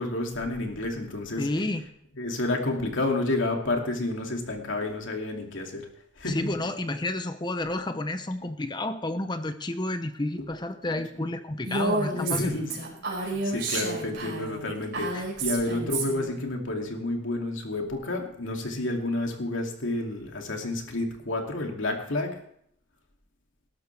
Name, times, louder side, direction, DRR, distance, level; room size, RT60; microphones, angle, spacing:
voice 1, 0.0-1.5 2.2-5.9 6.2-6.5 8.4-8.5 11.1-11.3 12.1-22.3, left 2 dB, 75° left, 2 dB, 2.7 m, -30 dB
voice 2, 1.4-1.9 6.2-12.5 13.2-13.3 15.1-15.2, left 2 dB, 20° left, 9 dB, 0.7 m, -31 dB
Female speech woman speaking, 11.6-16.3, right 2 dB, 60° right, 5.1 m, -30 dB
20.0 x 12.0 x 3.4 m, 0.68 s
head